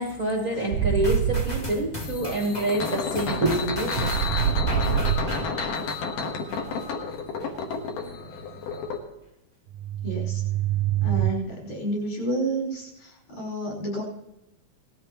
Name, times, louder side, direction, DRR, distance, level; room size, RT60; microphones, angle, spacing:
voice 1, 0.0-4.1, right 1 dB, 65° right, 1 dB, 0.8 m, -26 dB
sound 1, 0.7-1.7 3.9-5.5 9.7-11.3, right 10 dB, 80° right, 1.8 m, -25 dB
sound 2, 1.0-6.9 7.4-7.5, left 1 dB, 35° left, 0.6 m, -37 dB
sound 3, 2.0-9.0, left 4 dB, 80° left, 3.1 m, -31 dB
voice 2, 10.0-10.4 11.0-14.0, right 2 dB, 65° left, -3 dB, 6.4 m, -30 dB
19.0 x 13.5 x 3.0 m, 0.91 s
omnidirectional pair, 3.8 m